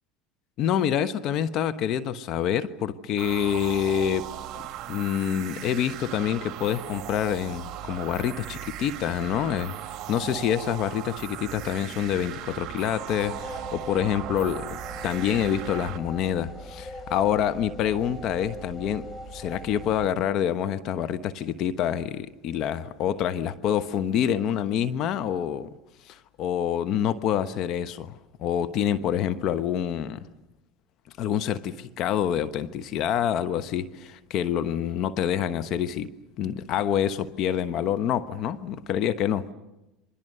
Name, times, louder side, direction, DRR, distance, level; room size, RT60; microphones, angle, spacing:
voice 1, 0.6-4.3 4.9-9.7 10.1-19.1 19.3-25.7 26.1-30.2 31.2-36.1 36.4-39.5, left 9 dB, 55° left, 1.1 m, -27 dB
sound 1, 3.2-16.0, right 12 dB, 50° right, 1.5 m, -38 dB
sound 2, 13.2-20.1, equal, 20° left, 3.5 m, -41 dB
28.5 x 23.5 x 6.7 m
hypercardioid pair, 90°, 0 cm